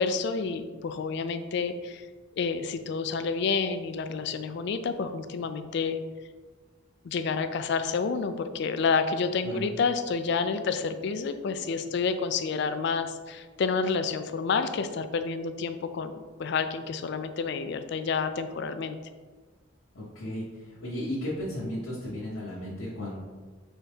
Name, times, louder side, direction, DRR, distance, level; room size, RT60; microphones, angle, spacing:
voice 1, 0.0-2.1 2.4-6.0 7.0-19.0, left 5 dB, 55° left, 10 dB, 0.3 m, -29 dB
voice 2, 19.9-23.2, left 1 dB, 75° left, -9 dB, 1.0 m, -35 dB
4.2 x 3.5 x 3.4 m, 1.4 s
head